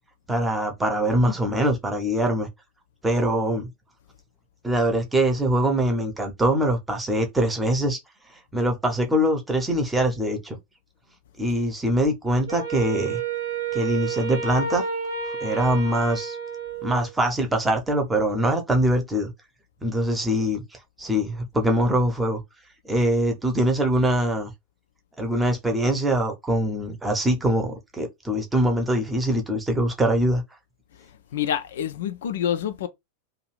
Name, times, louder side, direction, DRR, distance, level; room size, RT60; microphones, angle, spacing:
voice 1, 0.3-2.5 3.0-3.7 4.6-8.0 8.5-10.6 11.4-13.2 13.7-14.8 15.4-16.4 16.8-19.3 19.8-20.6 21.0-22.4 22.8-24.5 25.2-30.4, right 1 dB, 10° right, 0.8 m, -23 dB
Wind instrument woodwind instrument, 12.5-17.1, right 5 dB, 65° right, 0.7 m, -30 dB
voice 2, 31.3-32.9, left 9 dB, 60° left, 0.3 m, -27 dB
2.6 x 2.4 x 3.1 m
figure-of-eight pair, 90°, 0 cm